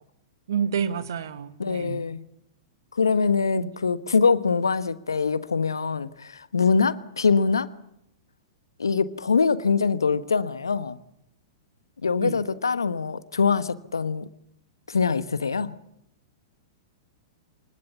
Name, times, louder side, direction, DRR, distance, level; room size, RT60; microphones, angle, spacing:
voice 1, 0.5-2.0 3.5-3.7 12.2-12.4, right 7 dB, 65° right, 1.5 m, -29 dB
voice 2, 1.6-2.2 2.9-7.7 8.8-11.0 12.0-14.3 14.9-15.8, left 5 dB, 80° left, 1.3 m, -23 dB
24.5 x 20.5 x 7.2 m
figure-of-eight pair, 105°, 2 cm